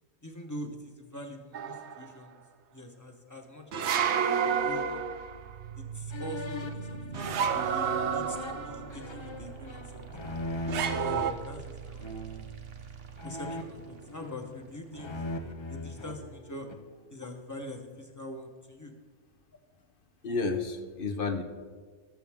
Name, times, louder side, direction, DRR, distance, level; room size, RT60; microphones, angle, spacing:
voice 1, 0.2-2.4 2.7-3.9 4.4-5.1 5.8-10.1 10.9-12.1 13.2-15.2 15.7-16.7 17.1-18.9, left 1 dB, 15° left, 3 dB, 1.1 m, -44 dB
sound 1, 1.5-2.1 3.7-5.5 7.1-8.9 10.7-11.3, right 7 dB, 90° right, 1.0 m, -29 dB
sound 2, 4.5-16.5, right 5 dB, 60° right, 1.2 m, -44 dB
sound 3, 6.1-11.4 12.0-12.5 13.2-14.6 14.9-16.9, left 2 dB, 30° left, 0.6 m, -40 dB
voice 2, 20.2-21.4, left 4 dB, 55° left, 7 dB, 1.1 m, -31 dB
18.5 x 6.9 x 3.6 m, 1.5 s
omnidirectional pair, 1.1 m